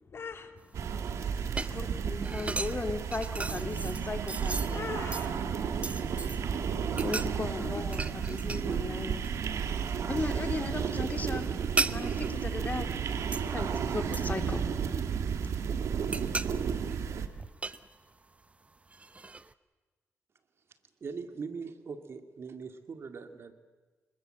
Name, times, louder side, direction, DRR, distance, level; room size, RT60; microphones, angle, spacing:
voice 1, 0.0-1.8 4.7-7.0 7.7-8.0 8.3-8.5 9.6-10.0, left 5 dB, 55° left, 8 dB, 2.2 m, -45 dB
sound 1, 0.6-6.5 6.9-8.9 9.2-10.0 10.3-13.6 14.1-15.3 15.7-18.4 18.9-19.5, right 3 dB, 25° right, 0.8 m, -38 dB
sound 2, 0.7-17.3, right 7 dB, 80° right, 1.6 m, -32 dB
voice 2, 1.5-4.9 7.0-9.2 10.1-11.5 11.9-12.9 13.4-14.6, left 3 dB, 35° left, 7 dB, 2.6 m, -36 dB
voice 3, 21.0-23.5, right 5 dB, 60° right, 8 dB, 2.2 m, -41 dB
26.0 x 21.0 x 7.7 m, 1.3 s
cardioid pair, 75°, 5 cm